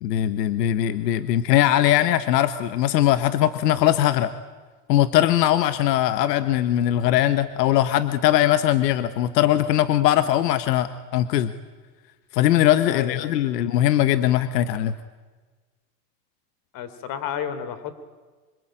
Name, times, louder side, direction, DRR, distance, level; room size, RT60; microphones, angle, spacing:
voice 1, 0.0-4.3 4.9-11.5 12.3-14.9, left 12 dB, 75° left, 12 dB, 1.5 m, -20 dB
voice 2, 12.9-13.4 16.7-17.9, left 8 dB, 45° left, 12 dB, 3.6 m, -31 dB
27.0 x 24.0 x 9.1 m, 1.3 s
supercardioid pair, 130°, 48 cm